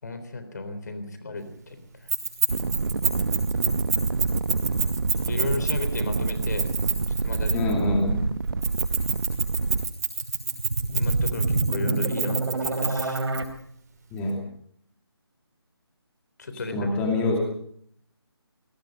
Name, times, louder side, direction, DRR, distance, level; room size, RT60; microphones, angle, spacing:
voice 1, 0.0-2.1 5.2-6.7 7.2-7.7 10.9-13.2 16.4-16.9, left 2 dB, 40° left, 10 dB, 3.7 m, -34 dB
Keys jangling, 2.1-7.8 8.6-13.4, right 5 dB, 40° right, 6.2 m, -28 dB
sound 1, 2.5-9.9, right 4 dB, 60° right, 1.2 m, -27 dB
voice 2, 7.5-8.3 14.1-14.4 16.7-17.4, left 2 dB, 10° left, 1 dB, 2.6 m, -25 dB
sound 2, 10.2-13.4, right 3 dB, 75° right, 3.7 m, -26 dB
25.5 x 20.0 x 5.3 m, 0.65 s
figure-of-eight pair, 175°, 14 cm